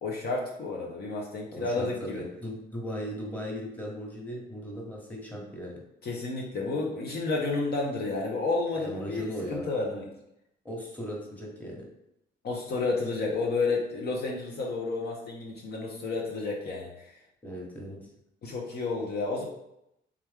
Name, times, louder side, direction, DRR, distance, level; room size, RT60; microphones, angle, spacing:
voice 1, 0.0-2.2 6.0-10.0 12.4-17.1 18.4-19.4, left 3 dB, 55° left, -2 dB, 0.8 m, -31 dB
voice 2, 1.5-5.8 8.8-9.7 10.6-11.9 17.4-18.0, equal, 10° left, -2 dB, 1.3 m, -37 dB
3.6 x 3.0 x 3.5 m, 0.81 s
cardioid pair, 90°, 20 cm